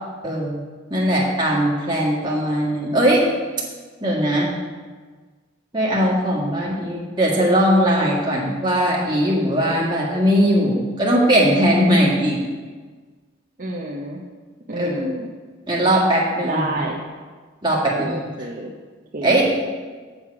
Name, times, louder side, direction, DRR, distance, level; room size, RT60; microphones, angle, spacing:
voice 1, 0.2-0.6 0.9-3.3 4.0-4.5 5.7-12.4 14.8-14.9 15.7-16.6 17.6-18.2 19.2-19.5, equal, 25° right, -4 dB, 1.9 m, -19 dB
voice 2, 13.6-14.2 14.7-15.3 16.4-17.0 17.9-18.7 19.1-19.5, right 1 dB, 40° right, -1 dB, 0.7 m, -29 dB
7.8 x 7.5 x 4.7 m, 1.5 s
head